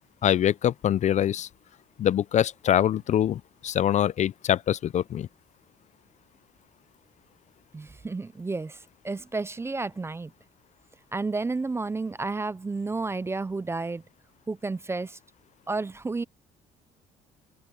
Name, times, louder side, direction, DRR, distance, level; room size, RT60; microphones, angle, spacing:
voice 1, 0.2-1.5 2.0-5.3, left 10 dB, 45° left, 0.4 m, -24 dB
voice 2, 7.7-10.3 11.1-14.0 14.5-15.2 15.7-16.2, right 3 dB, 15° right, 0.5 m, -31 dB
open air
cardioid pair, 110°, 17 cm